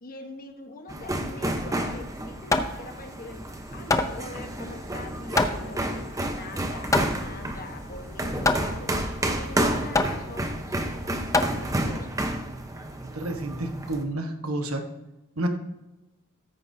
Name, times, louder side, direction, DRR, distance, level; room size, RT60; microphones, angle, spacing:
voice 1, 0.0-3.4 3.7-6.0 6.3-8.9 9.3-10.6 11.3-12.1, left 2 dB, 45° left, 5 dB, 1.2 m, -43 dB
sound 1, 0.9-14.0, right 1 dB, 15° right, 0.9 m, -31 dB
Hammer, 1.9-12.1, left 2 dB, 15° left, 0.6 m, -28 dB
sound 2, 3.2-12.1, left 1 dB, 90° left, 2.3 m, -51 dB
voice 2, 13.1-14.8 15.4-15.5, right 1 dB, 90° right, 5 dB, 1.3 m, -30 dB
13.5 x 9.8 x 2.8 m, 1.0 s
head